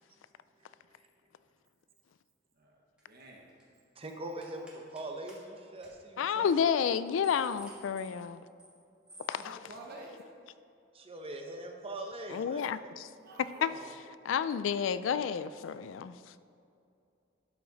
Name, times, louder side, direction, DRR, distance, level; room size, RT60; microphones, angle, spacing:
voice 1, 2.6-3.5 9.4-10.2 13.2-13.9, right 1 dB, 55° right, 0 dB, 1.1 m, -49 dB
sound 1, 3.0-3.2 3.5-3.8 4.4-5.0 5.3-5.4 5.8-5.9 6.3-6.4 6.8-8.8 9.1-9.4, right 1 dB, 5° right, 1.6 m, -54 dB
voice 2, 4.0-6.5 10.9-12.8, right 1 dB, 30° right, 3 dB, 0.8 m, -42 dB
voice 3, 6.2-8.4 9.3-9.6 12.3-13.1 13.6-13.7 14.3-16.2, left 7 dB, 80° left, 14 dB, 0.3 m, -30 dB
12.0 x 5.0 x 4.0 m, 2.5 s
head